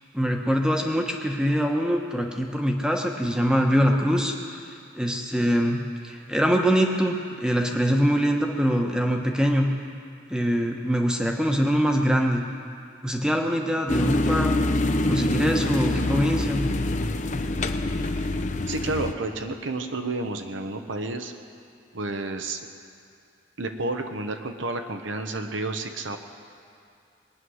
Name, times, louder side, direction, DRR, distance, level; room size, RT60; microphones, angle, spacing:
voice 1, 0.1-4.6 4.9-5.8 6.0-9.7 10.3-12.4 13.0-14.5 15.1-16.6, equal, 5° right, 2 dB, 1.1 m, -23 dB
sound 1, 13.9-19.1, left 2 dB, 40° left, 0.6 m, -25 dB
voice 2, 18.7-21.3 21.9-22.6 23.6-26.2, right 2 dB, 75° right, 6 dB, 1.0 m, -30 dB
21.5 x 9.6 x 6.4 m, 2.5 s
head